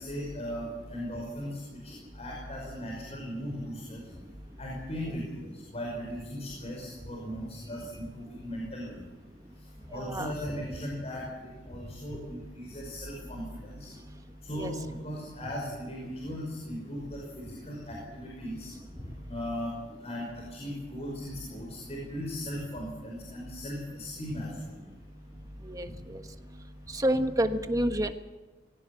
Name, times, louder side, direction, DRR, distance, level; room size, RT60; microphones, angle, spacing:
voice 1, 0.0-1.6 1.8-4.0 4.6-9.0 9.9-13.9 14.4-18.7 19.3-19.8 20.0-24.6, equal, 35° left, -1 dB, 5.4 m, -38 dB
voice 2, 9.9-10.3 14.6-14.7 25.6-26.2 26.9-28.1, right 1 dB, 20° right, 7 dB, 1.4 m, -28 dB
21.0 x 17.0 x 8.4 m, 1.2 s
head